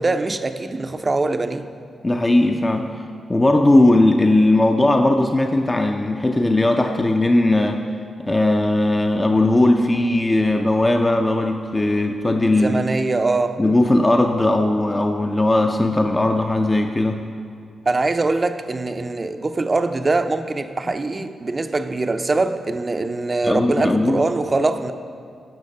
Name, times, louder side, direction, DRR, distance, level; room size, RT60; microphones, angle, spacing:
voice 1, 0.0-1.7 12.5-13.6 17.9-24.9, right 3 dB, 30° right, 0.5 m, -22 dB
voice 2, 2.0-2.9 3.3-7.8 8.3-12.8 13.6-17.2 20.9-21.0 23.4-24.2, left 1 dB, 20° left, 0.5 m, -18 dB
15.0 x 5.8 x 5.4 m
cardioid pair, 95°, 0 cm